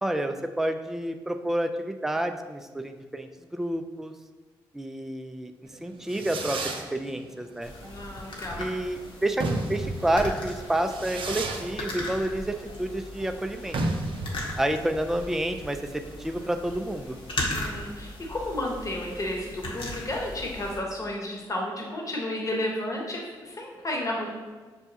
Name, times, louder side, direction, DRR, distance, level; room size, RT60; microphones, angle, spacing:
voice 1, 0.0-4.1 4.7-5.5 5.8-7.7 8.5-13.8 14.6-17.2, right 1 dB, 5° right, 6 dB, 0.3 m, -29 dB
Fireworks, 5.7-17.9, right 2 dB, 60° right, 0.5 m, -35 dB
sound 1, 7.6-20.8, left 1 dB, 60° left, 1.0 m, -38 dB
voice 2, 7.8-8.7 17.5-24.3, left 1 dB, 35° left, -1 dB, 1.0 m, -32 dB
6.0 x 2.2 x 2.7 m, 1.4 s
hypercardioid pair, 45°, 10 cm